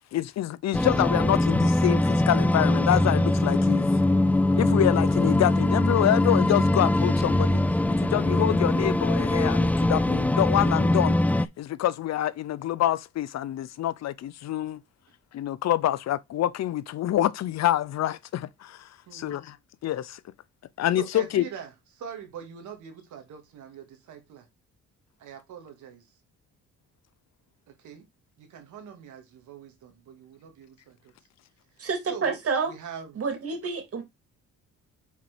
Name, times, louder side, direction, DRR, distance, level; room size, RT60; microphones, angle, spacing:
voice 1, 0.1-3.9 4.6-7.6 8.0-11.2 11.6-14.8 15.3-19.6 19.8-20.2 20.8-21.4, left 12 dB, 60° left, 0.6 m, -26 dB
sound 1, 0.7-11.5, left 1 dB, 5° left, 0.4 m, -22 dB
voice 2, 19.1-19.4 21.0-24.5 25.2-26.1 27.8-28.1 28.4-31.1 31.8-32.4 32.6-33.2, right 7 dB, 80° right, 2.2 m, -43 dB
voice 3, 31.8-32.7 33.1-34.0, right 5 dB, 50° right, 2.9 m, -28 dB
6.0 x 4.3 x 4.3 m
cardioid pair, 90°, 30 cm